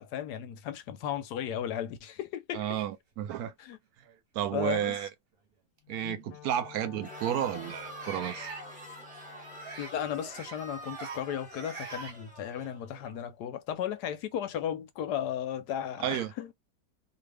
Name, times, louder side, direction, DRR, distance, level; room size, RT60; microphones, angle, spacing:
voice 1, 0.0-2.8 3.6-3.8 4.5-5.0 6.0-6.2 9.8-16.5, left 10 dB, 80° left, 1.2 m, -35 dB
voice 2, 2.5-3.5 4.3-5.1 5.9-8.5 16.0-16.3, right 10 dB, 70° right, 1.0 m, -32 dB
sound 1, 3.2-3.3 4.0-4.2 5.8-5.9 8.0-8.6 9.6-9.9 10.2-10.6 10.8-11.2 11.5-12.1, right 4 dB, 45° right, 0.8 m, -43 dB
Wind instrument woodwind instrument, 5.8-9.9, left 14 dB, 65° left, 0.7 m, -52 dB
Crowd, 7.0-13.2, right 1 dB, 5° right, 1.0 m, -46 dB
2.7 x 2.6 x 3.2 m
omnidirectional pair, 1.8 m